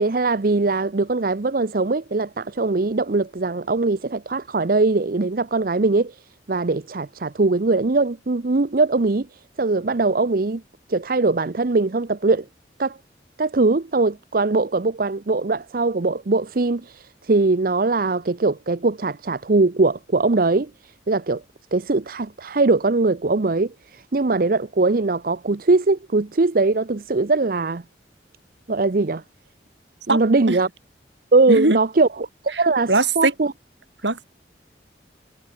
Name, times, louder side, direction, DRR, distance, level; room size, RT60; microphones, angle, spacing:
voice 1, 0.0-6.1 6.5-9.3 9.6-10.6 10.9-12.4 12.8-13.0 13.4-20.7 21.1-21.4 21.7-27.8 28.7-29.2 30.1-30.7 31.3-32.9 33.2-33.5, right 3 dB, 55° right, 0.7 m, -21 dB
voice 2, 31.5-31.8 32.9-33.3 34.0-34.2, right 2 dB, 90° right, 6.6 m, -19 dB
head